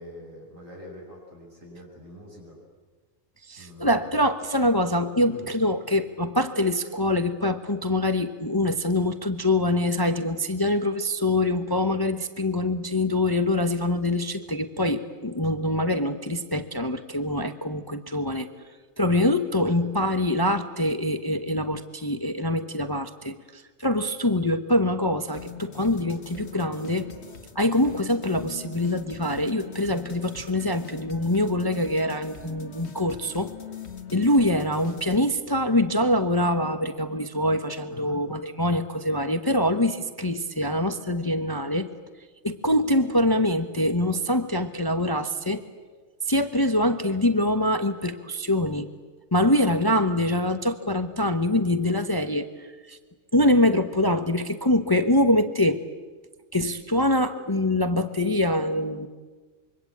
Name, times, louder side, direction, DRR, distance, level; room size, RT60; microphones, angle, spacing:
voice 1, 0.0-2.6 3.6-4.1 5.3-5.5 19.6-19.9 37.9-38.2 49.4-49.8, left 1 dB, 70° right, -1 dB, 8.1 m, -44 dB
voice 2, 3.5-18.5 19.0-27.0 27.5-33.5 34.1-41.9 42.4-45.6 46.3-48.9 49.3-53.0 53.3-55.8 56.5-59.1, left 1 dB, 20° left, 8 dB, 0.9 m, -24 dB
sound 1, 25.3-35.3, left 7 dB, 55° left, 1.6 m, -42 dB
25.5 x 23.5 x 8.6 m, 1.4 s
omnidirectional pair, 1.4 m